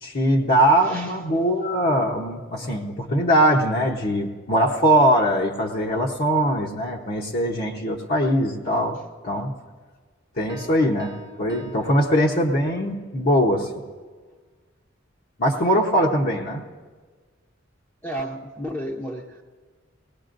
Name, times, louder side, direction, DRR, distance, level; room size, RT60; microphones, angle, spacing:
voice 1, 0.0-9.0 9.2-9.5 10.4-11.1 11.4-13.7 15.4-16.6, equal, 50° left, -2 dB, 0.9 m, -21 dB
voice 2, 0.8-1.2 18.0-19.4, equal, 10° left, -2 dB, 0.7 m, -32 dB
Piano, 10.5-12.9, right 4 dB, 20° right, 0.8 m, -44 dB
20.5 x 18.5 x 2.6 m, 1.5 s
head